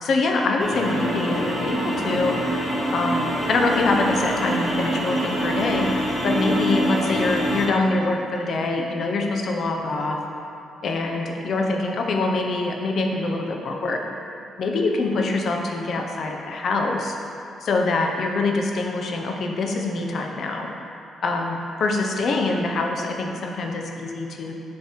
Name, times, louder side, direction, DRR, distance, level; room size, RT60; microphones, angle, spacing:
voice 1, 0.0-2.4 2.9-5.9 6.2-10.2 10.8-14.0 14.6-17.1 17.6-20.7 21.2-24.5, left 3 dB, 60° left, 2 dB, 0.7 m, -24 dB
sound 1, 0.6-7.7, equal, 15° left, 1.3 m, -25 dB
6.9 x 3.3 x 4.4 m, 2.8 s
cardioid pair, 90°, 0 cm